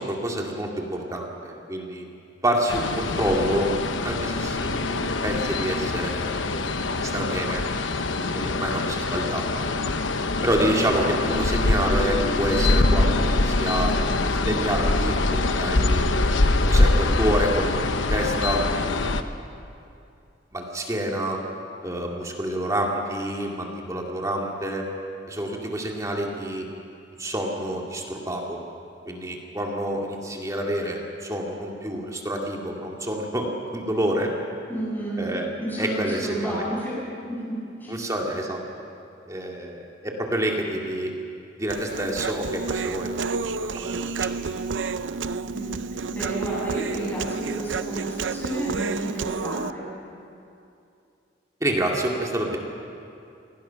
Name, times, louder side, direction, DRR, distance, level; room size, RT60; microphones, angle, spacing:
voice 1, 0.0-2.1 2.4-3.7 4.0-7.6 8.3-9.6 10.4-14.0 14.5-16.1 16.7-18.7 20.5-21.4 21.8-24.9 25.3-26.7 27.2-28.6 29.1-34.3 35.2-35.5 35.8-36.8 37.9-38.8 39.3-41.1 41.6-44.4 51.6-52.6, right 1 dB, 20° right, 0 dB, 2.3 m, -28 dB
sound 1, 2.7-19.2, left 2 dB, 85° left, 1.0 m, -24 dB
voice 2, 34.7-37.0 37.3-37.9 45.5-45.8 46.1-49.8, right 1 dB, 10° left, -7 dB, 7.5 m, -31 dB
Human voice, 41.7-49.7, right 4 dB, 80° right, 0.6 m, -30 dB
28.0 x 19.0 x 5.9 m, 2.6 s
head